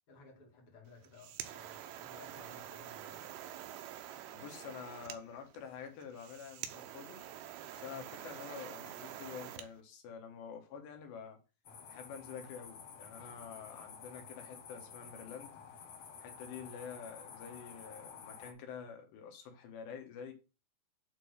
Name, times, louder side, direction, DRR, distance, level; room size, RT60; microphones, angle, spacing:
voice 1, 0.1-3.3 7.8-8.0, left 4 dB, 40° left, 2.5 m, -58 dB
sound 1, 0.9-9.7, right 11 dB, 80° right, 3.0 m, -47 dB
voice 2, 4.3-7.2 7.7-11.4 11.9-15.5 16.2-20.3, left 7 dB, 80° left, 3.6 m, -48 dB
sound 2, 11.6-18.5, left 6 dB, 60° left, 1.9 m, -51 dB
9.0 x 3.8 x 6.4 m
omnidirectional pair, 5.0 m